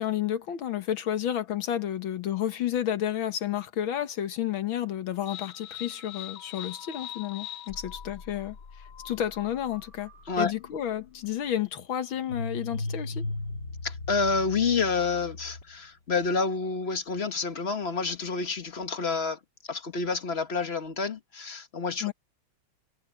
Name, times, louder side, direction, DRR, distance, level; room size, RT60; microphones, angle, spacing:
voice 1, 0.0-10.1 10.4-13.2 22.0-22.1, left 10 dB, 85° left, 2.1 m, -31 dB
sound 1, 5.3-15.9, left 4 dB, 60° left, 2.5 m, -39 dB
voice 2, 13.8-19.4 19.7-22.1, left 4 dB, 35° left, 1.4 m, -28 dB
omnidirectional pair, 2.2 m